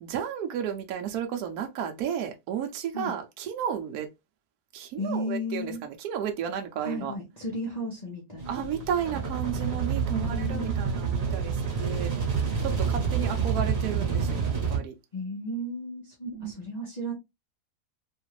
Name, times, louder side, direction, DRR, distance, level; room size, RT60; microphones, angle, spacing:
voice 1, 0.0-4.1 4.7-7.1 8.5-12.1 12.6-14.9 16.3-16.7, right 8 dB, 75° right, 1.1 m, -33 dB
voice 2, 5.0-5.8 6.8-8.6 10.1-10.7 15.1-17.1, left 1 dB, 30° left, 0.9 m, -34 dB
sound 1, 8.4-14.8, right 6 dB, 40° right, 1.4 m, -28 dB
3.5 x 2.4 x 3.1 m
omnidirectional pair, 1.7 m